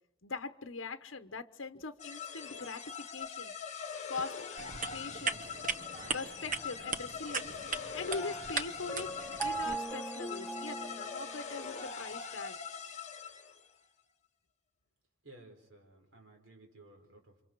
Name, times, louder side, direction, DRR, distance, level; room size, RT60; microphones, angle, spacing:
voice 1, 0.2-3.5 4.1-4.4 4.9-5.5 6.1-7.5 7.9-9.1 9.4-12.6, left 4 dB, 75° left, 9 dB, 0.9 m, -42 dB
sound 1, 2.0-13.7, left 6 dB, 40° left, 2.0 m, -43 dB
sound 2, 4.6-9.8, right 5 dB, 45° right, 1.0 m, -39 dB
Piano, 8.1-12.0, right 2 dB, 10° left, 0.8 m, -40 dB
voice 2, 15.2-17.4, right 2 dB, 85° right, 3 dB, 4.7 m, -56 dB
29.5 x 26.0 x 4.6 m, 0.82 s
head